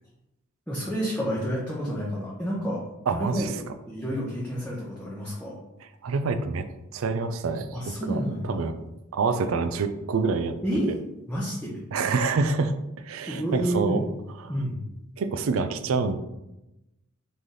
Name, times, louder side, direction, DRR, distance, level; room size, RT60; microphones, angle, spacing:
voice 1, 0.7-2.8 3.1-3.5 3.8-5.6 7.7-8.6 10.6-10.9 11.3-11.8 13.3-14.1 14.5-14.8, equal, 5° left, -7 dB, 0.8 m, -29 dB
voice 2, 3.1-3.5 6.0-6.7 6.9-8.8 9.1-10.6 10.9-11.0 11.9-14.0 14.4-14.5 15.2-16.2, right 4 dB, 65° right, 10 dB, 0.4 m, -27 dB
4.0 x 3.2 x 3.8 m, 0.93 s
head